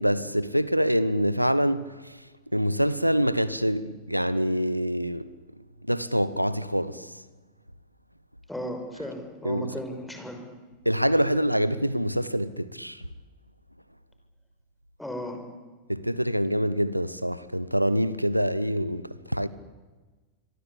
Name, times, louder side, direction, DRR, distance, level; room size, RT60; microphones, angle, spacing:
voice 1, 0.0-2.1 2.5-5.3 5.9-7.1 9.4-9.7 10.8-13.0 15.9-19.5, equal, 90° right, 1.0 m, -25 dB
voice 2, 8.5-10.4 15.0-15.4, equal, 5° left, 5.8 m, -35 dB
27.5 x 23.0 x 8.6 m
figure-of-eight pair, 90°, 0 cm